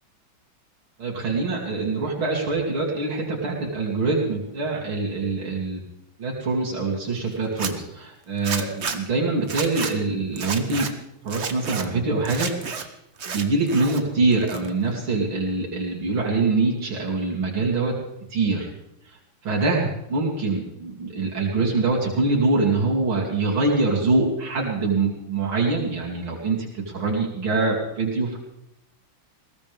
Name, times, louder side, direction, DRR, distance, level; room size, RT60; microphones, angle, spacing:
voice 1, 1.0-5.8 6.2-10.9 11.2-12.5 12.8-12.9 13.3-17.9 18.3-18.7 19.4-28.4, right 3 dB, 85° right, -4 dB, 3.9 m, -24 dB
Zipper (clothing), 7.4-7.7 8.4-9.0 9.4-9.9 10.4-10.9 11.3-11.8 12.3-12.8 13.2-14.0 14.3-14.9, right 5 dB, 40° right, 1.2 m, -30 dB
21.0 x 17.5 x 3.6 m, 0.83 s
omnidirectional pair, 2.2 m